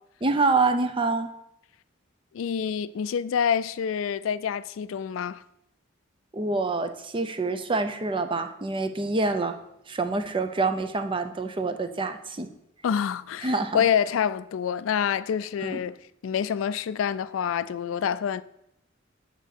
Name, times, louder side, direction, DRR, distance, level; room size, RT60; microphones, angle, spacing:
voice 1, 0.2-1.3 6.3-9.6 9.9-12.5 13.4-13.8 15.6-15.8, right 3 dB, 25° right, 0.6 m, -26 dB
voice 2, 2.3-5.4 12.8-16.0 16.2-18.4, left 8 dB, 80° left, 0.3 m, -27 dB
8.3 x 3.9 x 6.5 m
head